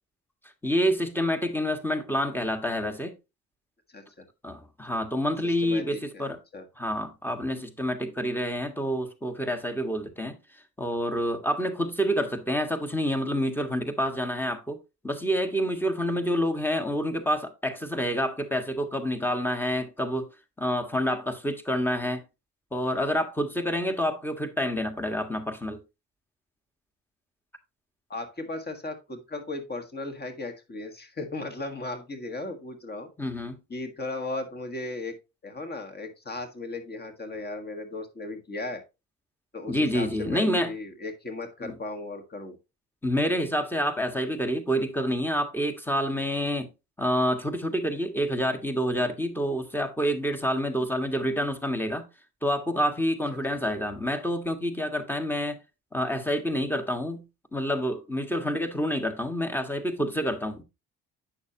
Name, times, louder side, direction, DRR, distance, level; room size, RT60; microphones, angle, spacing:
voice 1, 0.6-3.1 4.4-6.4 6.8-10.4 10.8-14.8 15.0-20.3 20.6-22.2 22.7-25.8 33.2-33.6 39.7-40.7 41.6-41.8 43.0-46.7 47.0-52.0 52.4-55.6 55.9-57.2 57.5-60.6, equal, 5° left, 1.6 m, -28 dB
voice 2, 3.9-4.2 5.4-6.6 28.1-33.1 33.7-35.1 35.4-38.8 39.5-42.6, left 2 dB, 35° left, 1.7 m, -36 dB
8.7 x 6.4 x 2.8 m
cardioid pair, 90°, 30 cm